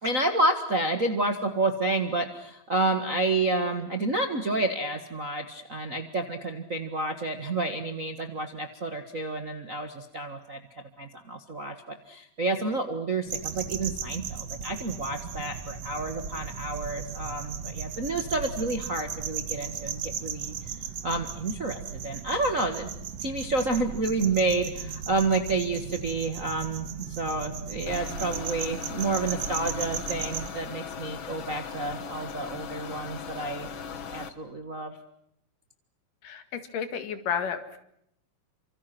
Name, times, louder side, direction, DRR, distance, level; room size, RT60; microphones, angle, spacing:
voice 1, 0.0-10.6 11.0-20.5 21.0-22.9 23.2-26.9 27.2-33.7 34.1-34.9, right 2 dB, 40° right, 6 dB, 1.2 m, -29 dB
sound 1, 13.3-30.5, right 7 dB, 55° right, 2.4 m, -36 dB
sound 2, 27.9-34.3, left 6 dB, 50° left, 1.6 m, -39 dB
voice 2, 36.2-37.8, left 7 dB, 70° left, 9 dB, 3.5 m, -32 dB
29.5 x 26.0 x 6.1 m, 0.73 s
omnidirectional pair, 4.0 m